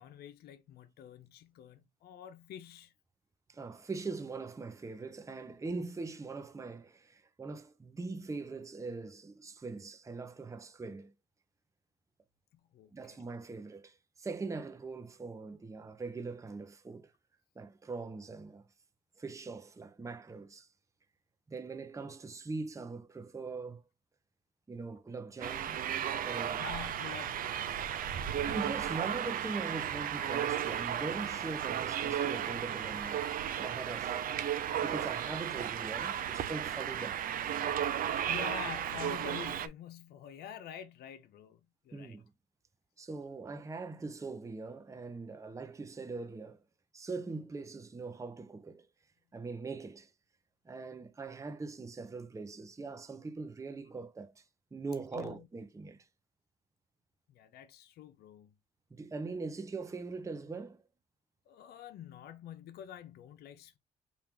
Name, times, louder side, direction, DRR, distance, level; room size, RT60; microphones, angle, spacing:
voice 1, 0.0-2.9 12.5-13.2 26.6-28.6 37.9-42.2 55.1-55.5 57.3-58.5 61.5-63.8, left 10 dB, 75° left, 0.6 m, -48 dB
voice 2, 3.5-11.1 12.9-17.1 17.6-18.6 19.2-20.7 21.5-23.8 24.7-25.8 26.2-26.7 28.2-34.3 34.8-37.2 41.9-42.3 43.0-46.6 46.9-48.9 49.3-50.1 50.6-54.4 54.7-56.1 58.9-60.8, right 3 dB, 20° right, 0.6 m, -42 dB
sound 1, 25.4-39.7, right 9 dB, 60° right, 0.5 m, -34 dB
4.5 x 2.5 x 3.5 m
cardioid pair, 80°, 17 cm